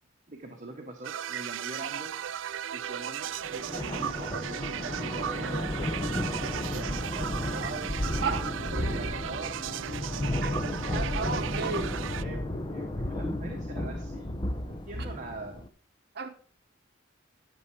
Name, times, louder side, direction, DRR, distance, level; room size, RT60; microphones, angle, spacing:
voice 1, 0.3-2.1 2.7-5.6 6.1-8.4 8.7-9.6 11.3-14.3 14.7-15.6, right 2 dB, 40° right, 2 dB, 1.3 m, -43 dB
sound 1, 1.0-12.2, right 9 dB, 70° right, 0.4 m, -36 dB
sound 2, 3.4-15.7, left 1 dB, 25° left, 0.8 m, -33 dB
voice 2, 10.9-11.9 16.1-16.3, right 5 dB, 55° right, 7 dB, 1.1 m, -32 dB
11.0 x 7.0 x 5.0 m, 0.42 s
head